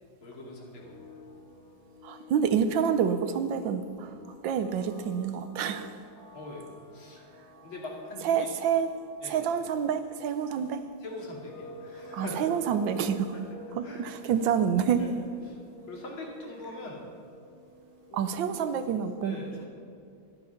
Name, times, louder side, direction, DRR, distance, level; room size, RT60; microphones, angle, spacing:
voice 1, 0.2-1.0 6.3-7.2 7.6-8.5 9.2-9.4 11.0-12.4 13.8-14.0 15.0-15.1 15.5-15.6 15.9-17.0 18.1-18.3 19.2-19.7, left 2 dB, 90° left, -2 dB, 3.3 m, -42 dB
sound 1, 0.8-18.4, equal, 45° left, 2.9 m, -50 dB
voice 2, 2.0-4.1 4.4-6.0 8.2-8.9 9.3-10.8 12.1-13.4 13.8-15.0 18.1-19.4, right 7 dB, 75° right, 10 dB, 1.4 m, -28 dB
13.5 x 11.0 x 5.7 m, 2.4 s
omnidirectional pair, 2.2 m